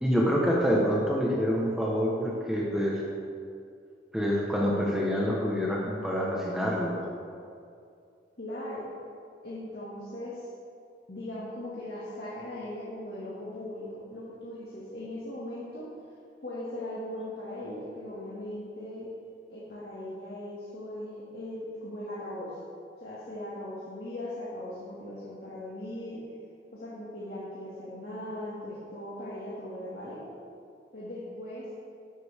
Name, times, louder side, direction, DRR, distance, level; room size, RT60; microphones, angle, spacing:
voice 1, 0.0-3.0 4.1-6.9, equal, 5° right, -4 dB, 1.2 m, -26 dB
voice 2, 8.4-8.8 9.4-10.5 11.1-15.9 16.4-19.1 19.5-22.7 23.0-26.2 26.7-30.2 30.9-31.7, left 1 dB, 55° left, -8 dB, 2.2 m, -39 dB
12.0 x 11.0 x 3.6 m, 2.4 s
head